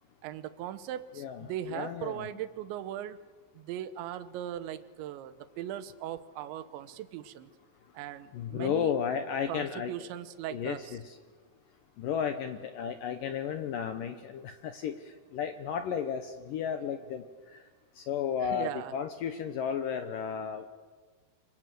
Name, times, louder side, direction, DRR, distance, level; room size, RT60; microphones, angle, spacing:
voice 1, 0.2-3.2 3.5-7.5 7.9-8.9 9.5-11.0 18.5-18.9, right 11 dB, 85° right, 12 dB, 3.3 m, -39 dB
voice 2, 1.2-2.3 8.3-9.9 10.5-11.2 12.0-17.6 18.0-20.7, left 8 dB, 75° left, 8 dB, 2.0 m, -33 dB
26.0 x 25.0 x 7.8 m, 1.5 s
omnidirectional pair, 5.1 m